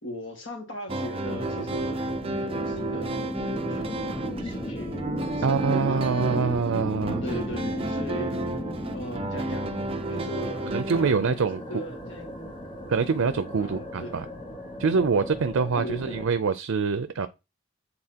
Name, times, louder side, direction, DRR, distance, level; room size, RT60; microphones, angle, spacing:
voice 1, 0.0-2.1 2.4-6.1 6.7-8.5 8.9-12.5 13.6-14.2 15.8-16.3, equal, 60° left, 1.9 m, -39 dB
sound 1, 0.9-11.1, right 2 dB, 25° right, 0.6 m, -32 dB
sound 2, 1.2-16.2, equal, 40° left, 2.1 m, -36 dB
voice 2, 5.4-7.2 10.6-11.6 12.9-14.2 14.8-17.3, right 5 dB, 85° right, 0.5 m, -25 dB
8.6 x 4.0 x 2.9 m
head